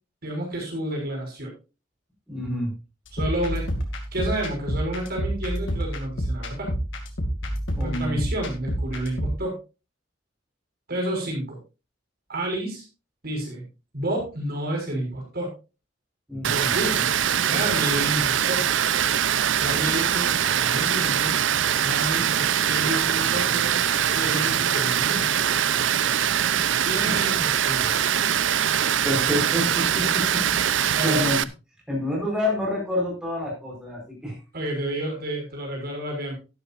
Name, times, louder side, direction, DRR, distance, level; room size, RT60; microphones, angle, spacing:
voice 1, 0.2-1.5 3.1-3.7 4.1-6.7 7.8-9.6 10.9-11.6 12.3-12.8 13.2-13.6 13.9-15.5 16.4-17.1 17.4-18.7 19.6-21.3 21.8-23.7 24.1-25.4 26.8-28.1 30.9-31.3 34.5-36.3, right 1 dB, 55° right, 1 dB, 6.2 m, -30 dB
voice 2, 2.3-2.7 7.7-8.2 16.3-16.7 26.8-27.3 27.8-27.9 29.0-31.5 31.9-34.4, left 1 dB, 5° right, -2 dB, 4.7 m, -28 dB
sound 1, 3.1-9.4, equal, 80° left, 2.5 m, -29 dB
Water, 16.4-31.4, right 9 dB, 75° right, 0.6 m, -23 dB
12.5 x 12.0 x 2.6 m, 0.29 s
head